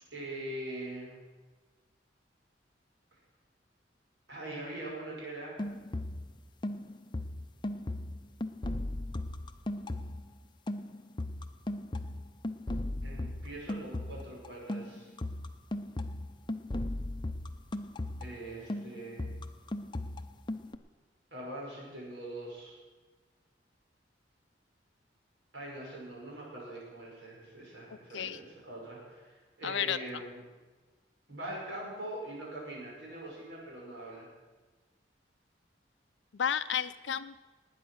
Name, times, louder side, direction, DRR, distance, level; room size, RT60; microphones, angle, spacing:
voice 1, 0.1-1.2 4.3-5.6 13.0-15.1 18.2-19.3 21.3-22.8 25.5-30.4 31.3-34.3, right 1 dB, 80° right, -3 dB, 5.9 m, -42 dB
sound 1, 5.6-6.4 6.6-10.3 10.7-18.4 18.7-20.8, left 1 dB, 25° left, 0.6 m, -37 dB
voice 2, 27.9-28.4 29.6-30.0 36.3-37.4, left 8 dB, 85° left, 10 dB, 0.5 m, -32 dB
19.0 x 9.0 x 6.4 m, 1.3 s
head